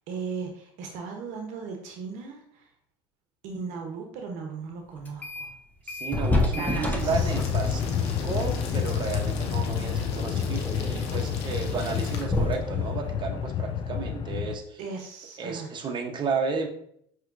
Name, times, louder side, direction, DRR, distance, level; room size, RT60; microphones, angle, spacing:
voice 1, 0.1-2.6 3.4-5.5 6.3-7.3 14.8-15.7, right 5 dB, 65° right, 2 dB, 0.9 m, -37 dB
sound 1, 5.1-5.6 5.9-14.3, left 2 dB, 10° left, 0.8 m, -32 dB
voice 2, 5.8-14.8 15.4-16.7, right 5 dB, 35° right, 3 dB, 0.9 m, -33 dB
sound 2, 7.0-12.2, left 4 dB, 90° left, 0.7 m, -42 dB
sound 3, 7.0-14.6, left 8 dB, 40° left, 0.4 m, -29 dB
5.7 x 3.0 x 2.5 m, 0.68 s
supercardioid pair, 85°, 13 cm